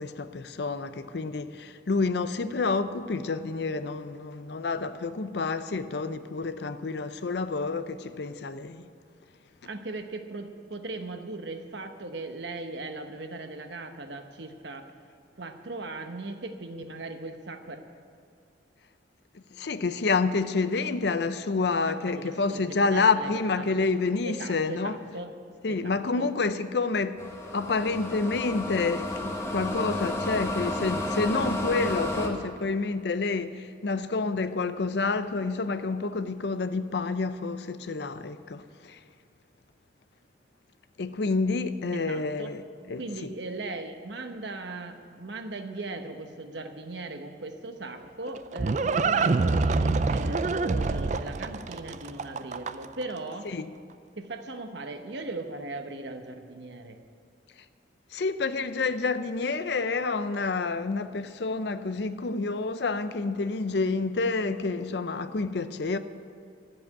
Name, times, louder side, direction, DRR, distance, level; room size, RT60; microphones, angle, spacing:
voice 1, 0.0-8.9 19.3-25.0 25.6-27.2 27.5-39.0 41.0-43.4 53.5-53.7 58.1-66.0, left 4 dB, 60° left, 0.5 m, -28 dB
voice 2, 9.6-14.9 15.4-17.8 21.9-23.3 23.6-23.8 24.2-25.3 25.7-26.3 41.9-42.5 43.0-53.5 54.2-57.0, right 2 dB, 70° right, 1.0 m, -38 dB
sound 1, 27.2-32.3, left 1 dB, 15° left, 1.2 m, -32 dB
Livestock farm animals working animals, 48.0-53.0, right 3 dB, 40° right, 0.4 m, -26 dB
13.0 x 7.7 x 9.8 m
head